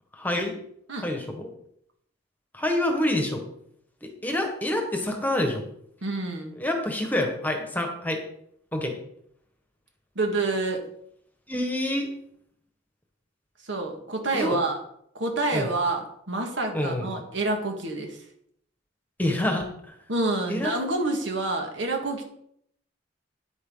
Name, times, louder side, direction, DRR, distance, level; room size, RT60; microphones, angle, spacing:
voice 1, 0.1-0.6 1.0-1.5 2.5-3.4 4.0-5.6 6.6-8.2 8.7-9.0 11.5-12.1 14.3-14.6 15.5-15.7 16.7-17.0 19.2-19.9 20.5-20.7, left 1 dB, 10° left, 3 dB, 1.5 m, -27 dB
voice 2, 6.0-6.6 10.2-10.8 13.6-14.8 15.1-18.2 20.1-22.2, right 2 dB, 70° right, 2 dB, 1.9 m, -28 dB
10.0 x 9.0 x 3.9 m, 0.70 s
head